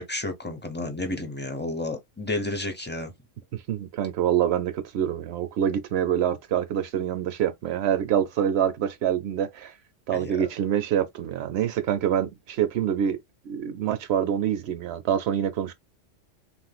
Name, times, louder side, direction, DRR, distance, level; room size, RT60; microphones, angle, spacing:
voice 1, 0.0-3.1 10.2-10.3, left 2 dB, 15° left, 0.4 m, -31 dB
voice 2, 3.7-9.7 10.1-13.2 13.5-15.7, right 9 dB, 65° right, 0.7 m, -26 dB
3.4 x 2.5 x 2.3 m
omnidirectional pair, 1.3 m